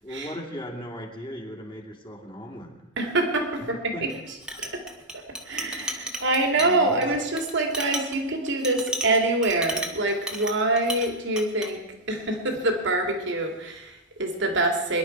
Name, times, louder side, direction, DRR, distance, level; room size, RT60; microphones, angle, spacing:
voice 1, 0.0-2.7 3.6-4.1 6.6-7.0, equal, 25° left, 0 dB, 2.7 m, -38 dB
voice 2, 3.0-4.8 5.1-11.8 12.1-15.0, right 2 dB, 65° right, 3 dB, 2.6 m, -25 dB
Chink clink, 4.1-11.1 11.4-11.7, right 1 dB, 5° right, 1.5 m, -34 dB
23.0 x 11.0 x 4.6 m, 0.94 s
head